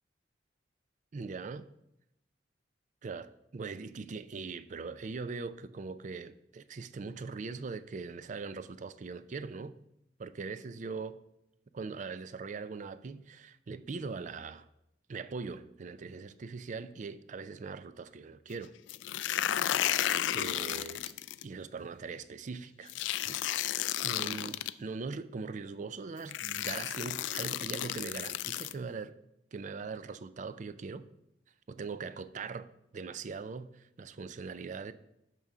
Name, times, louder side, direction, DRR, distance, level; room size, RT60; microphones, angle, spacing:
voice 1, 1.1-1.7 3.0-9.8 10.2-11.2 11.7-14.6 15.1-18.7 20.3-21.0 21.4-22.9 23.2-23.4 24.0-29.2 29.5-31.1 31.7-32.7 32.9-34.9, right 4 dB, 40° right, 13 dB, 0.4 m, -41 dB
sound 1, 18.9-21.4 22.9-24.7 25.7-25.8 26.3-28.7, left 12 dB, 80° left, 0.3 m, -33 dB
11.0 x 3.8 x 6.0 m, 0.83 s
head